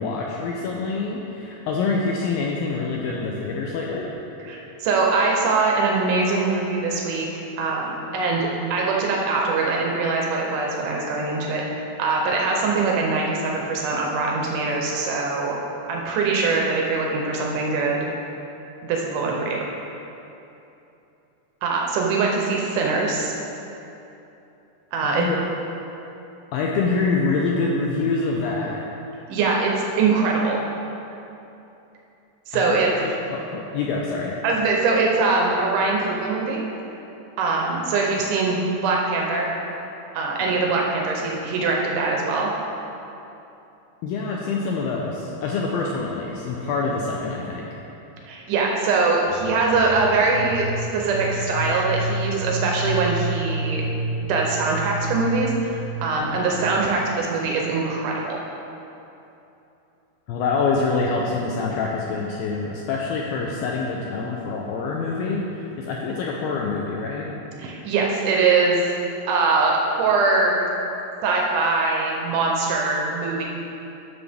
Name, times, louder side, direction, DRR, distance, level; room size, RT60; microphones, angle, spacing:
voice 1, 0.0-4.1 25.0-25.4 26.5-28.9 32.5-34.4 44.0-47.7 60.3-67.3, left 4 dB, 90° left, -2 dB, 2.1 m, -26 dB
voice 2, 4.4-7.3 7.6-15.6 15.9-18.1 18.8-19.6 21.6-23.3 24.9-25.2 29.3-30.6 32.5-32.9 34.4-36.6 37.4-39.5 40.1-42.5 48.3-53.8 54.3-58.4 67.6-68.9 69.3-70.7 71.2-73.4, right 3 dB, 90° right, -1 dB, 1.8 m, -22 dB
sound 1, 49.2-57.1, right 1 dB, 70° left, 3.3 m, -30 dB
10.5 x 7.0 x 3.5 m, 2.9 s
omnidirectional pair, 4.8 m